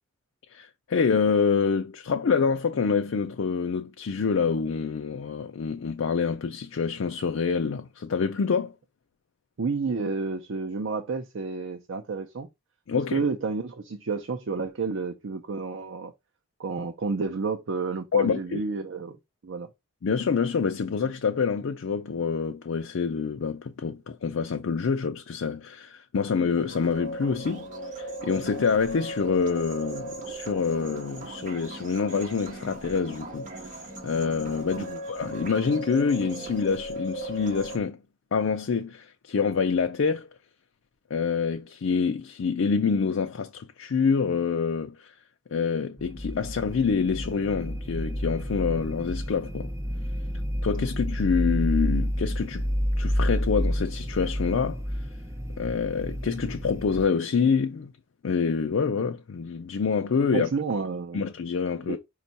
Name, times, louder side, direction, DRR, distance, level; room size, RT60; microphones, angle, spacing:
voice 1, 0.5-8.7 12.9-13.2 18.1-18.6 20.0-27.7 28.0-38.0 38.3-40.3 41.1-45.1 45.5-49.7 50.6-52.7 53.0-54.8 55.6-57.9 58.2-60.5 61.1-62.0, left 5 dB, 75° left, 0.4 m, -26 dB
voice 2, 9.6-12.5 12.9-16.1 16.6-19.2 19.4-19.7 34.8-35.0 60.3-61.2 61.9-62.0, right 4 dB, 70° right, 0.5 m, -30 dB
sound 1, 26.6-37.8, right 2 dB, 40° right, 1.1 m, -38 dB
sound 2, 46.0-57.0, equal, 15° right, 0.7 m, -30 dB
5.2 x 2.4 x 4.0 m
head